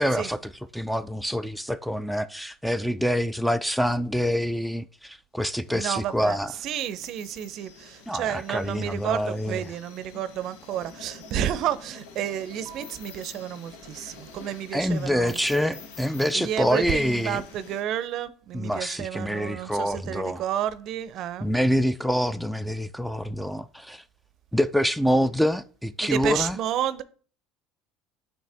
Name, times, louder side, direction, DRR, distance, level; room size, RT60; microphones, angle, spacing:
voice 1, 0.0-6.5 8.1-9.6 14.7-17.4 18.5-20.4 21.4-24.0 24.5-26.6, equal, ahead, 0.3 m, -26 dB
sound 1, 5.6-17.8, left 5 dB, 80° left, 0.8 m, -47 dB
voice 2, 5.7-6.4 6.6-15.4 16.3-21.5 26.0-27.0, right 10 dB, 60° right, 0.5 m, -31 dB
8.9 x 3.1 x 3.4 m
hypercardioid pair, 80°, 0 cm